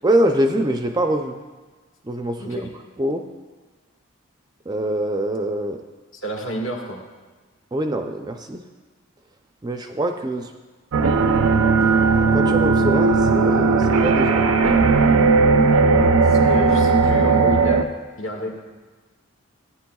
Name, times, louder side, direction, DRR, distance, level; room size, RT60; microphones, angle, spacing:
voice 1, 0.0-1.4 2.0-2.7 3.0-3.3 4.7-5.8 7.7-8.6 9.6-10.5 12.3-14.5, right 1 dB, 20° right, 5 dB, 0.4 m, -24 dB
voice 2, 6.1-7.0 16.2-17.8 18.2-18.5, equal, 65° left, 0 dB, 1.6 m, -29 dB
sound 1, 10.9-17.8, right 4 dB, 85° right, 0.5 m, -17 dB
14.5 x 9.6 x 2.3 m, 1.3 s
head